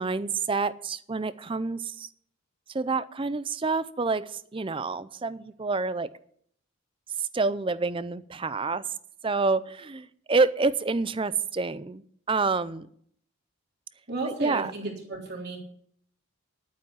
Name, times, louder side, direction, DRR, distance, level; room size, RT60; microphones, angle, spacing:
voice 1, 0.0-2.1 2.7-6.1 7.2-8.9 9.2-12.9 14.3-14.7, right 4 dB, 25° right, 16 dB, 0.5 m, -28 dB
voice 2, 14.1-15.6, right 3 dB, 50° right, 0 dB, 3.7 m, -33 dB
11.0 x 9.4 x 7.3 m, 0.63 s
head